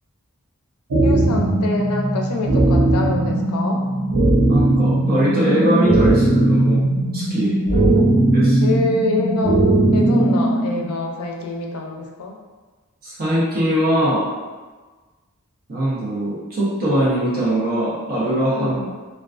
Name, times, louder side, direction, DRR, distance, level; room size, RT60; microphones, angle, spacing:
sound 1, 0.9-10.9, right 2 dB, 85° right, 0.6 m, -18 dB
voice 1, 1.0-3.8 7.7-8.1 8.6-9.6 9.9-12.4 18.5-18.9, left 3 dB, 85° left, 0 dB, 0.4 m, -25 dB
voice 2, 4.5-6.8 7.1-7.6 8.3-8.8 13.0-14.3 15.7-18.9, equal, 40° right, -8 dB, 0.6 m, -21 dB
2.3 x 2.3 x 2.3 m, 1.3 s
head